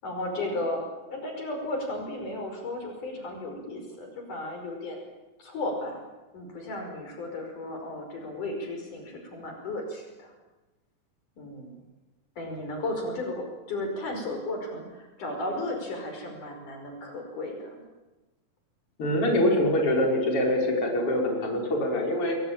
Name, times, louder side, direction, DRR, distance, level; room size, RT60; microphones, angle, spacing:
voice 1, 0.0-5.0 5.4-6.0 6.3-10.3 11.4-11.8 12.4-17.8, left 1 dB, 65° left, 3 dB, 6.8 m, -34 dB
voice 2, 19.0-22.3, left 1 dB, 40° left, 1 dB, 6.1 m, -24 dB
29.0 x 22.5 x 9.0 m, 1.1 s
omnidirectional pair, 3.9 m